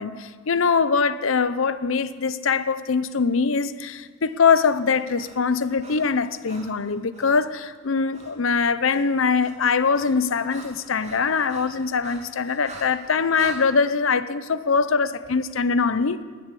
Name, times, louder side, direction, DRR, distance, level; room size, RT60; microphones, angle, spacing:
voice 1, 0.0-16.2, left 5 dB, 80° left, 13 dB, 0.7 m, -22 dB
Breathing, 4.2-7.5 8.1-8.4 8.6-13.6, right 3 dB, 35° right, 2.6 m, -45 dB
20.0 x 7.2 x 8.4 m, 1.5 s
head